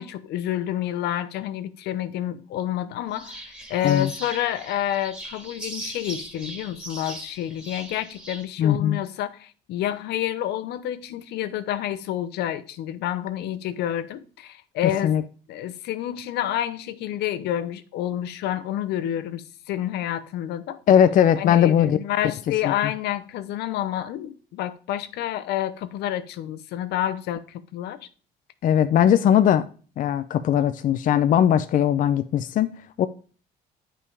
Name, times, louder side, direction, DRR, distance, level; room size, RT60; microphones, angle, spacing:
voice 1, 0.0-15.1 15.5-20.8 21.4-28.1, left 11 dB, 80° left, 0.9 m, -29 dB
sound 1, 3.1-8.4, right 1 dB, 5° right, 2.3 m, -39 dB
voice 2, 8.6-9.0 15.0-15.2 20.9-22.0 22.6-22.7 28.6-29.7 30.0-32.7 33.0-33.1, left 10 dB, 55° left, 0.5 m, -19 dB
9.0 x 5.6 x 4.8 m
cardioid pair, 110°, 17 cm